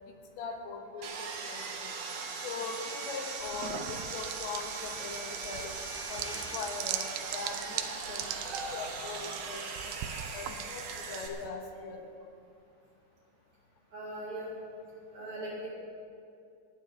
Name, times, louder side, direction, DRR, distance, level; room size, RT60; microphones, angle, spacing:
voice 1, 0.4-1.9 2.4-5.7 6.1-7.1 7.3-9.9 10.3-12.0, left 5 dB, 85° left, 2 dB, 3.7 m, -41 dB
Sawing, 1.0-11.3, right 4 dB, 60° right, 2.3 m, -39 dB
sound 1, 3.4-11.5, right 10 dB, 80° right, 2.3 m, -41 dB
voice 2, 13.9-14.5 15.1-15.7, right 1 dB, 40° right, -8 dB, 4.6 m, -39 dB
28.5 x 9.5 x 3.5 m, 2.4 s
omnidirectional pair, 5.0 m